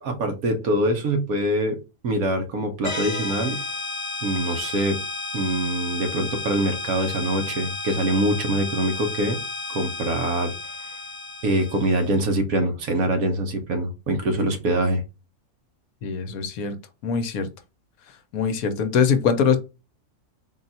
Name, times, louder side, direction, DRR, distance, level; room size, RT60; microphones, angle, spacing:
voice 1, 0.0-1.8 2.0-3.6 4.2-5.0 5.3-9.4 9.7-10.5 11.4-15.0, right 1 dB, 65° right, 1.3 m, -24 dB
sound 1, 2.8-12.2, left 3 dB, 35° left, 0.6 m, -32 dB
voice 2, 16.0-16.8 17.0-17.5 18.3-19.6, left 6 dB, 70° left, 1.1 m, -22 dB
4.0 x 2.3 x 4.0 m
omnidirectional pair, 1.6 m